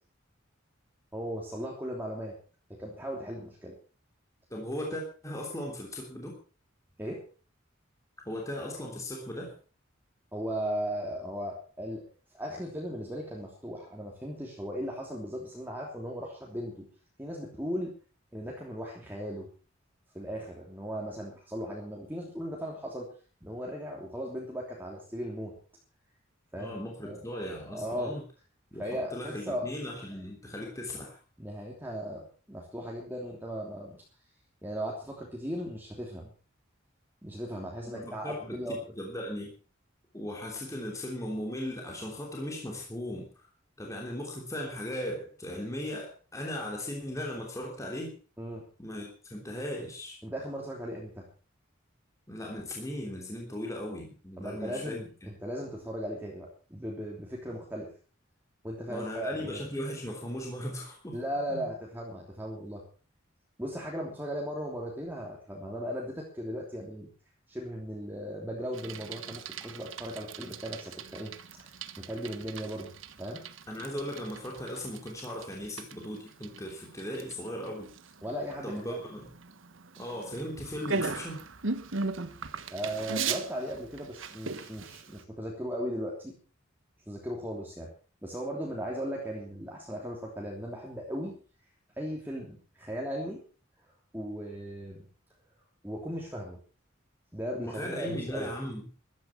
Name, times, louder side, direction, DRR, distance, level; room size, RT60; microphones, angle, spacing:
voice 1, 1.1-2.3 2.7-3.7 7.0-7.2 10.3-12.0 12.3-16.9 17.2-17.9 18.3-19.5 20.1-23.1 23.4-25.5 26.5-26.7 27.0-27.2 27.7-28.1 28.8-29.7 31.4-34.0 34.6-36.3 37.2-38.8 48.4-48.6 50.2-51.2 54.4-57.9 58.6-59.7 61.1-62.8 63.6-67.1 67.5-71.3 71.6-72.9 73.2-73.4 78.2-79.0 82.7-86.3 87.1-87.9 88.2-91.3 92.0-93.4 94.1-95.1 95.8-96.6 97.3-98.5, equal, 10° right, -2 dB, 3.1 m, -37 dB
voice 2, 4.5-6.3 8.2-9.5 26.5-28.2 28.7-31.2 37.9-38.6 39.0-39.5 40.1-43.5 43.8-48.1 48.8-50.2 52.3-55.3 58.9-61.1 61.5-61.6 73.7-77.9 78.6-79.3 80.0-81.4 97.6-98.9, left 1 dB, 15° left, 0 dB, 3.3 m, -37 dB
Bicycle, 68.7-85.2, right 4 dB, 75° right, 1.4 m, -39 dB
14.5 x 12.5 x 5.9 m, 0.38 s
head